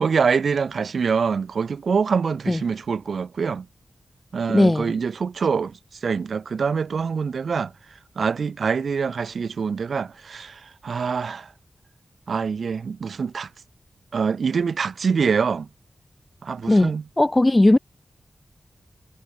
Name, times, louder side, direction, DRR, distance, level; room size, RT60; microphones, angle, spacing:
voice 1, 0.0-3.7 4.3-7.7 8.2-11.5 12.3-13.5 14.1-15.7 16.4-17.0, right 5 dB, 80° right, 2.5 m, -25 dB
voice 2, 4.5-4.9 16.7-16.9 17.2-17.8, left 1 dB, 20° left, 0.4 m, -17 dB
wide cardioid pair, 100°, 0 cm